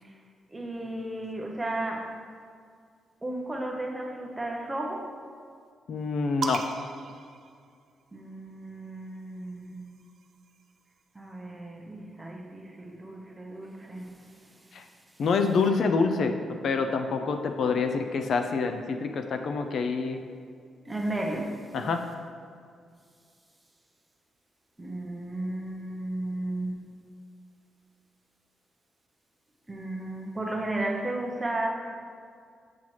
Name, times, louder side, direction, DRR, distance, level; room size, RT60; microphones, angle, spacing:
voice 1, 0.5-2.2 3.2-5.1 8.1-9.9 11.1-14.8 20.9-21.7 24.8-26.9 29.7-31.7, right 1 dB, 10° right, 1 dB, 0.6 m, -34 dB
voice 2, 5.9-6.7 14.7-14.8 15.2-20.2 21.7-22.0, left 4 dB, 55° left, 6 dB, 0.3 m, -26 dB
sound 1, 6.4-8.2 9.3-11.0, right 5 dB, 50° right, 0.4 m, -39 dB
7.4 x 5.5 x 3.1 m, 2.2 s
cardioid pair, 155°, 0 cm